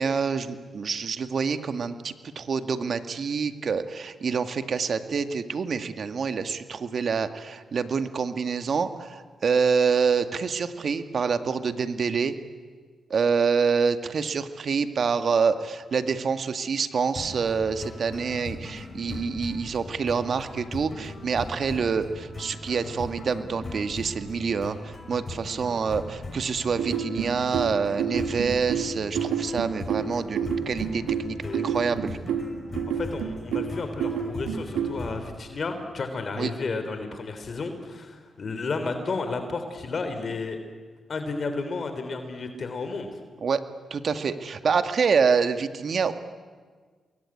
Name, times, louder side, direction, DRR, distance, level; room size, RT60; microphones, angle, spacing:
voice 1, 0.0-12.3 13.1-32.2 36.4-36.5 43.4-43.6 43.9-46.1, right 5 dB, 60° right, 9 dB, 1.9 m, -26 dB
sound 1, 17.1-35.3, left 2 dB, 40° left, 7.0 m, -39 dB
sound 2, 26.8-35.0, right 7 dB, 90° right, 2.1 m, -29 dB
voice 2, 31.4-31.7 32.9-40.6 41.1-43.2, left 3 dB, 55° left, 8 dB, 3.5 m, -32 dB
27.5 x 22.0 x 9.9 m, 1.5 s
supercardioid pair, 55°, 0 cm